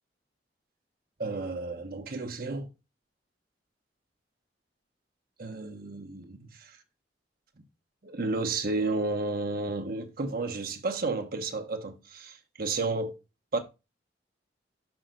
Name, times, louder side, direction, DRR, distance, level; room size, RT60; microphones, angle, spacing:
voice 1, 1.2-2.7 5.4-6.8 8.0-13.1 13.5-13.6, right 3 dB, 55° right, 1.0 m, -32 dB
5.9 x 5.6 x 3.8 m
head